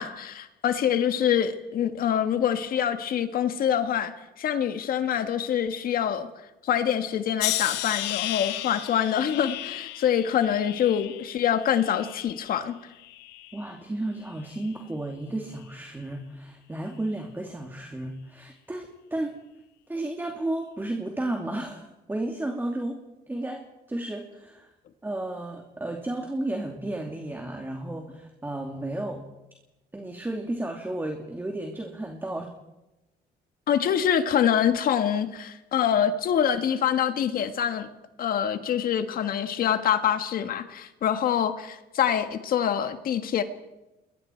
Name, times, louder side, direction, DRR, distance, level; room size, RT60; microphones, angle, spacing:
voice 1, 0.0-6.3 6.6-12.8 33.7-37.9 38.2-43.4, left 9 dB, 60° left, 9 dB, 1.7 m, -25 dB
sound 1, 7.4-12.6 13.0-13.7 14.4-14.7, left 15 dB, 90° left, 1.2 m, -34 dB
voice 2, 13.5-19.4 19.9-23.0 23.3-24.7 25.0-29.2 29.9-32.5, right 1 dB, 10° right, 2 dB, 2.7 m, -33 dB
29.5 x 22.0 x 4.6 m, 0.99 s
cardioid pair, 110°, 17 cm